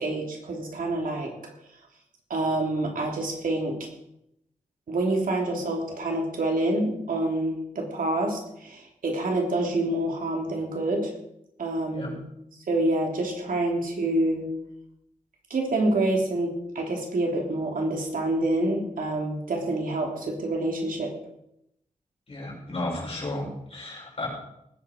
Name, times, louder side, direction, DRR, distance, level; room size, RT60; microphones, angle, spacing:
voice 1, 0.0-1.3 2.3-3.8 4.9-11.1 11.6-12.2 12.7-14.5 15.5-21.1, right 2 dB, 85° right, 0 dB, 3.2 m, -27 dB
voice 2, 22.3-24.3, left 2 dB, 45° left, -4 dB, 6.4 m, -33 dB
19.5 x 8.6 x 5.2 m, 0.81 s
wide cardioid pair, 175°, 14 cm